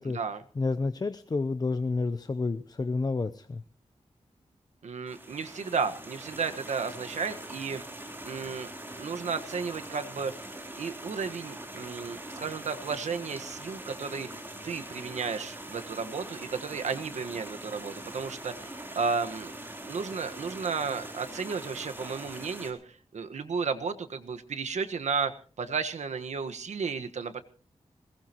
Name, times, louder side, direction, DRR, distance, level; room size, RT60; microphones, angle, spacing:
voice 1, 0.6-3.6, left 3 dB, 35° left, 11 dB, 0.7 m, -30 dB
voice 2, 4.8-7.8 8.2-8.7 9.0-10.3 10.8-14.3 14.6-19.5 19.9-22.8 23.1-25.3 25.6-27.4, right 5 dB, 90° right, 8 dB, 1.5 m, -33 dB
sound 1, 5.1-22.7, right 1 dB, 20° right, 3.7 m, -43 dB
21.5 x 19.0 x 3.0 m, 0.38 s
wide cardioid pair, 115°, 12 cm